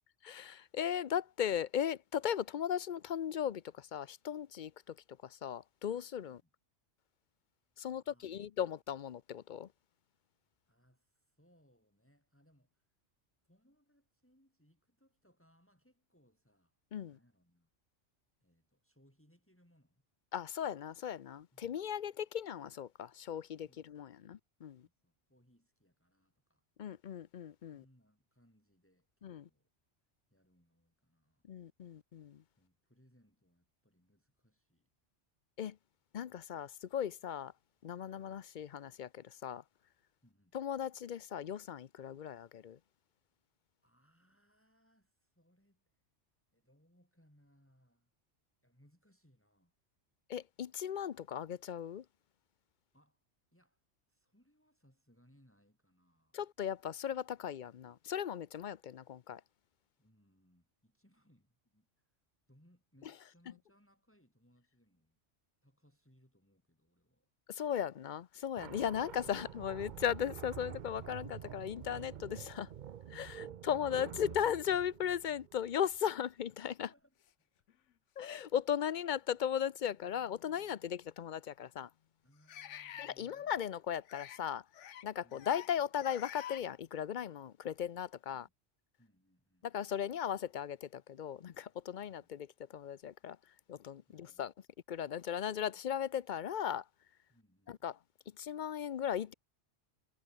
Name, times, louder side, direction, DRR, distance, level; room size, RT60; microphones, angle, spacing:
voice 1, 0.2-5.0 5.2-6.4 7.8-9.7 16.9-17.2 20.3-24.9 26.8-27.8 29.2-29.5 31.5-32.4 35.6-35.8 36.1-37.5 37.8-39.6 40.5-42.8 50.3-52.0 56.3-59.4 67.5-72.7 73.1-76.9 78.2-81.9 83.0-84.6 85.0-88.5 89.6-93.4 93.7-94.5 94.9-96.8 97.7-98.0 98.4-99.3, left 9 dB, 50° left, 0.6 m, -37 dB
voice 2, 6.2-6.5 7.9-8.5 10.7-12.9 13.4-17.7 18.4-20.0 21.5-21.7 22.1-22.2 23.7-24.3 24.7-26.7 27.7-29.7 30.3-31.4 32.6-34.9 40.2-40.6 43.8-46.0 46.5-48.1 48.6-49.8 52.9-56.4 60.0-62.2 62.5-65.2 65.6-67.3 73.4-74.4 76.8-77.7 82.2-83.6 85.2-85.6 89.0-89.7 94.1-94.4 97.3-97.9, equal, 10° left, 7.9 m, -70 dB
sound 1, 68.6-76.0, right 9 dB, 55° right, 0.6 m, -48 dB
sound 2, 77.7-77.8 78.5-78.7 80.3-80.4 82.5-83.1 84.0-84.4 84.7-85.0 85.3-85.7 86.0-86.6, left 11 dB, 85° left, 1.1 m, -48 dB
omnidirectional pair, 1.2 m